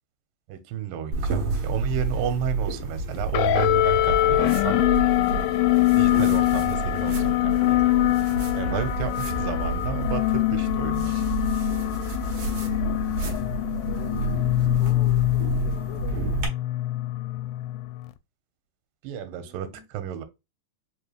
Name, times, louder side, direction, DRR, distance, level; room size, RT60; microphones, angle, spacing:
voice 1, 0.5-4.8 5.9-7.8 8.5-11.1 19.0-20.2, right 10 dB, 80° right, 2.4 m, -32 dB
sound 1, 1.1-16.5, right 2 dB, 55° right, 1.8 m, -30 dB
sound 2, 3.3-18.1, left 17 dB, 85° left, 2.3 m, -24 dB
voice 2, 13.7-14.4 14.8-16.2 19.3-19.9, left 9 dB, 70° left, 1.8 m, -45 dB
5.2 x 3.2 x 2.3 m
omnidirectional pair, 4.1 m